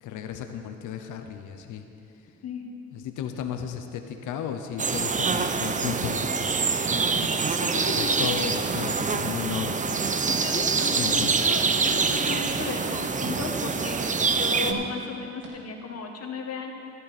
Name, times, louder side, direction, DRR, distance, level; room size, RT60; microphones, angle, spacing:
voice 1, 0.0-1.9 2.9-6.6 7.9-9.9 11.0-11.5, left 8 dB, 80° left, 6 dB, 0.9 m, -34 dB
sound 1, 4.8-14.7, right 4 dB, 25° right, 0.6 m, -25 dB
sound 2, 7.1-7.3 7.9-8.3 8.6-8.9 9.5-9.8 10.3-10.5 11.0-11.4 11.8-12.1 12.5-12.8 13.1-13.6 14.0-14.3 14.7-15.0 15.4-15.5, right 4 dB, 80° right, 2.3 m, -39 dB
voice 2, 7.6-8.3 10.3-16.7, left 4 dB, 55° left, 2 dB, 1.7 m, -35 dB
14.0 x 11.0 x 4.2 m, 2.6 s
cardioid pair, 90°, 30 cm